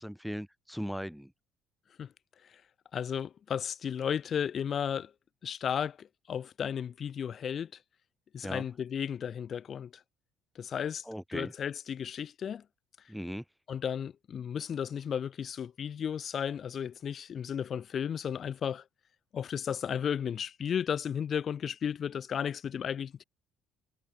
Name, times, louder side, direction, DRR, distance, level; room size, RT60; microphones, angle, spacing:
voice 1, 0.0-1.3 8.4-8.7 11.1-11.5 13.1-13.4, equal, ahead, 1.6 m, -38 dB
voice 2, 2.9-5.1 5.4-7.7 8.3-10.0 10.6-11.0 11.3-12.6 13.7-18.8 19.3-23.2, left 8 dB, 45° left, 0.4 m, -34 dB
cardioid pair, 95°, 0 cm